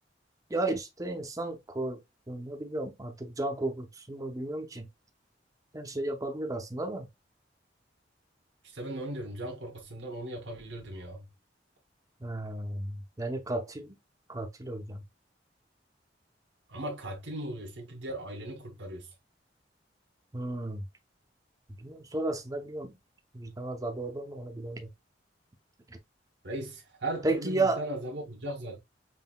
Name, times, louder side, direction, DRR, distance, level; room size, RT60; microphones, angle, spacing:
voice 1, 0.5-2.0 2.3-4.9 5.7-7.1 12.2-14.0 14.3-15.0 20.3-20.8 21.8-22.9 23.3-24.9 25.9-26.0 27.2-27.8, right 2 dB, 20° right, 0.7 m, -33 dB
voice 2, 8.6-11.3 16.7-19.1 26.4-28.8, right 1 dB, 80° right, 1.0 m, -38 dB
5.5 x 2.7 x 2.2 m
head